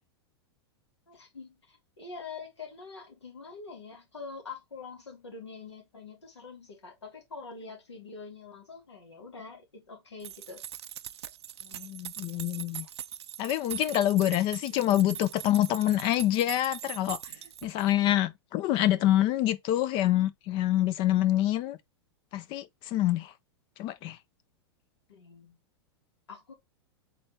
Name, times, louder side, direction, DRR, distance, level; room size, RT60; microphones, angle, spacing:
voice 1, 1.1-10.6 14.7-15.2 25.1-25.6 26.3-26.5, left 4 dB, 80° left, 2.0 m, -45 dB
sound 1, 10.2-18.0, right 10 dB, 70° right, 0.4 m, -42 dB
voice 2, 11.7-12.9 13.4-17.2 17.6-21.8 22.3-23.3 23.8-24.2, left 13 dB, 35° left, 0.4 m, -26 dB
4.2 x 3.4 x 3.2 m
figure-of-eight pair, 100°, 14 cm